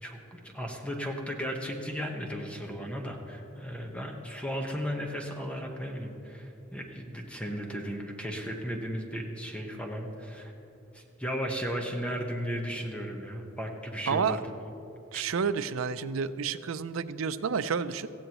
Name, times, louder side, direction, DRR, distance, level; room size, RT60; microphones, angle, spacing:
voice 1, 0.0-10.5 10.9-14.4 15.1-15.2, equal, 5° left, 1 dB, 1.1 m, -35 dB
voice 2, 14.1-14.4 15.1-18.1, right 6 dB, 90° right, 13 dB, 0.5 m, -30 dB
17.0 x 15.0 x 3.0 m, 2.9 s
head